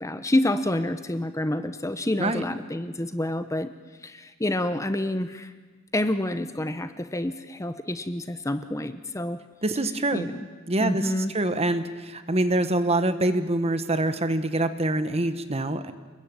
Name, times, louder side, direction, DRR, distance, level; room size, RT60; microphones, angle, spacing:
voice 1, 0.0-3.7 4.0-5.5 5.9-9.4 10.1-10.5 10.8-11.3, left 1 dB, 15° left, 10 dB, 0.8 m, -28 dB
voice 2, 9.6-10.3 10.7-11.0 11.3-15.9, right 1 dB, 30° right, 10 dB, 1.3 m, -25 dB
29.0 x 21.5 x 8.9 m, 1.4 s
head